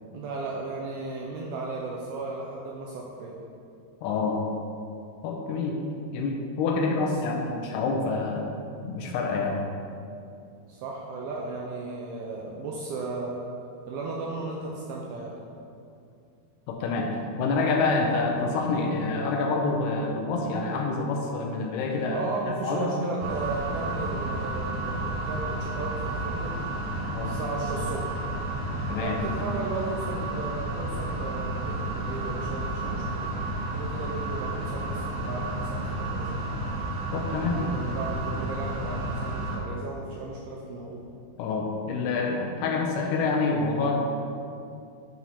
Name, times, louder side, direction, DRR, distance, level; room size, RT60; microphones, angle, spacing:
voice 1, 0.1-3.4 6.8-7.3 10.7-13.3 13.9-15.4 22.1-26.6 27.2-28.1 29.0-33.3 33.7-36.5 37.3-41.0, right 3 dB, 90° right, -2 dB, 2.2 m, -35 dB
voice 2, 4.0-4.4 5.2-5.8 6.1-8.5 8.8-9.6 16.7-17.1 17.4-22.9 27.1-27.4 28.9-29.2 37.1-37.6 41.4-44.0, left 3 dB, 80° left, 1 dB, 2.6 m, -27 dB
sound 1, 23.2-39.6, right 1 dB, 70° right, 1.9 m, -31 dB
9.7 x 4.5 x 4.2 m, 2.6 s
omnidirectional pair, 5.0 m